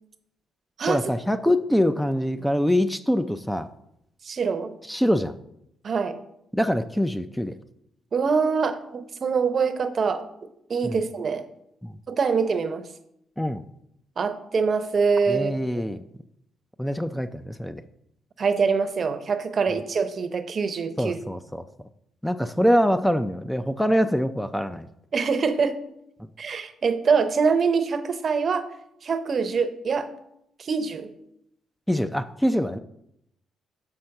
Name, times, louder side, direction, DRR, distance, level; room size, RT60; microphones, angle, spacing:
voice 1, 0.9-3.7 4.9-5.4 6.5-7.5 10.8-11.0 11.8-11.9 13.4-13.6 15.3-16.0 16.8-17.8 21.0-21.6 22.2-24.9 31.9-32.8, equal, 5° left, 10 dB, 0.3 m, -24 dB
voice 2, 4.2-4.7 5.8-6.2 8.1-10.3 10.7-11.4 12.1-12.8 14.2-15.8 18.4-21.2 25.1-25.8 26.4-28.6 29.0-30.1 30.6-31.1, right 5 dB, 45° right, 10 dB, 0.7 m, -24 dB
5.8 x 4.4 x 6.4 m, 0.77 s
cardioid pair, 90°, 0 cm